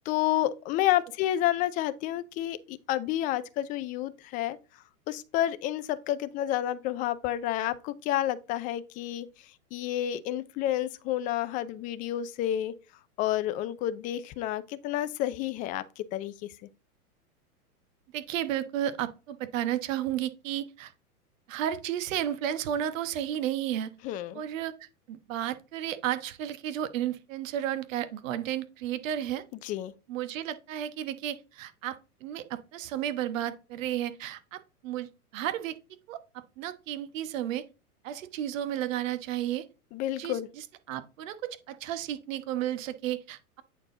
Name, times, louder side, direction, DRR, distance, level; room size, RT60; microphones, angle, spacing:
voice 1, 0.1-4.6 5.1-9.3 9.7-12.7 13.2-16.3 24.0-24.4 29.6-29.9 39.9-40.5, left 13 dB, 20° left, 0.4 m, -30 dB
voice 2, 18.1-20.9 21.5-23.9 24.3-29.4 30.1-35.8 36.1-37.6 38.0-39.7 40.2-43.6, right 11 dB, 60° right, 1.2 m, -33 dB
8.8 x 4.4 x 3.8 m
hypercardioid pair, 120°, 45 cm